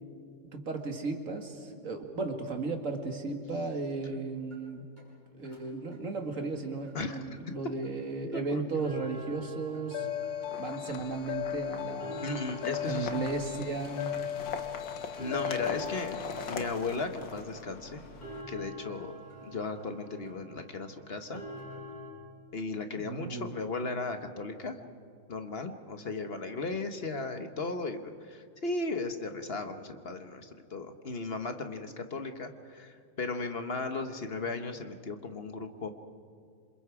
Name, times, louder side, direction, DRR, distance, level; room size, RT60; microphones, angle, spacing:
voice 1, 0.5-4.8 5.3-10.1 10.6-12.3 12.8-14.1 22.9-23.6, right 3 dB, 40° right, 4 dB, 2.3 m, -35 dB
sound 1, 4.5-4.6 5.0-5.1 5.4-5.6 5.9-6.0 6.4-6.5 6.9-7.0 7.4-7.5 7.8-7.9 8.3-8.4 8.7-22.1, left 1 dB, 20° left, 7.6 m, -47 dB
voice 2, 6.9-7.5 8.3-8.6 12.2-13.1 15.2-18.0 18.5-21.4 22.5-24.8 25.3-35.9, left 3 dB, 35° left, 7 dB, 1.0 m, -36 dB
sound 2, 9.9-16.5, left 11 dB, 80° left, 1.8 m, -37 dB
sound 3, 10.4-18.4, left 4 dB, 65° left, 2.0 m, -43 dB
27.5 x 27.0 x 4.9 m, 2.3 s
omnidirectional pair, 2.3 m